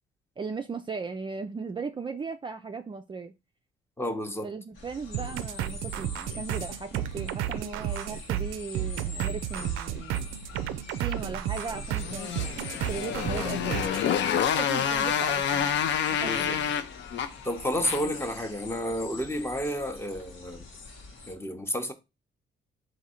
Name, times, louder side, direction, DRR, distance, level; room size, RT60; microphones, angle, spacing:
voice 1, 0.4-3.3 4.4-10.3 11.0-13.9 14.6-15.7 16.1-16.7, right 5 dB, 25° right, 0.4 m, -37 dB
voice 2, 4.0-4.5 16.2-16.5 17.4-20.6 21.3-21.9, equal, 10° left, 0.7 m, -31 dB
sound 1, 4.8-21.4, left 4 dB, 85° left, 1.3 m, -45 dB
sound 2, 5.1-14.0, right 11 dB, 85° right, 0.4 m, -32 dB
Motorcycle, 11.9-18.3, left 8 dB, 70° left, 0.5 m, -28 dB
3.8 x 2.7 x 4.2 m
cardioid pair, 90°, 20 cm